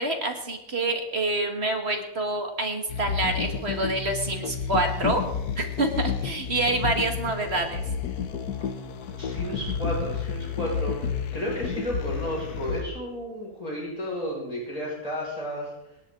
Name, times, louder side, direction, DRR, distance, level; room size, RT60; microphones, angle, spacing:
voice 1, 0.0-5.2 5.6-7.8, right 2 dB, 40° right, 4 dB, 2.1 m, -27 dB
sound 1, 2.9-12.8, left 7 dB, 80° left, 1.6 m, -31 dB
voice 2, 9.1-15.7, equal, 25° left, -4 dB, 5.9 m, -33 dB
26.5 x 10.5 x 3.9 m, 0.93 s
omnidirectional pair, 1.6 m